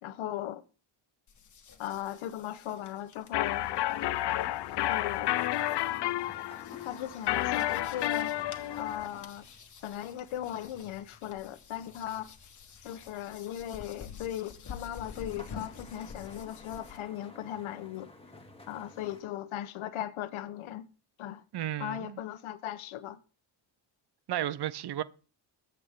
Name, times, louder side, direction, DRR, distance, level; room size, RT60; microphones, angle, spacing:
voice 1, 0.0-0.6 1.8-3.7 4.9-5.3 6.8-8.3 8.8-9.4 9.8-12.3 12.8-18.1 18.7-20.8 21.2-21.4 21.8-23.2, left 11 dB, 85° left, 1.1 m, -38 dB
sound 1, 1.3-17.0, left 7 dB, 40° left, 1.7 m, -50 dB
sound 2, 3.3-9.1, left 14 dB, 60° left, 0.6 m, -31 dB
sound 3, 3.4-19.2, left 2 dB, 10° left, 2.1 m, -53 dB
voice 2, 21.5-22.2 24.3-25.0, right 12 dB, 55° right, 0.8 m, -33 dB
22.5 x 8.1 x 3.7 m
cardioid pair, 130°, 47 cm